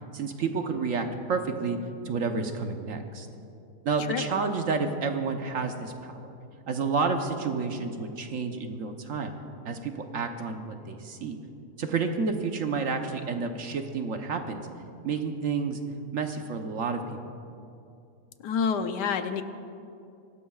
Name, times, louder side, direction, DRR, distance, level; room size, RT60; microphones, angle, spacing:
voice 1, 0.1-1.8 2.0-3.3 3.8-6.3 6.7-9.3 9.6-11.4 11.8-14.6 15.0-15.8 16.1-17.0, right 4 dB, 55° right, 5 dB, 1.2 m, -30 dB
voice 2, 4.1-4.4 18.4-19.4, left 6 dB, 90° left, 8 dB, 1.4 m, -28 dB
23.5 x 18.0 x 2.4 m, 2.6 s
omnidirectional pair, 1.8 m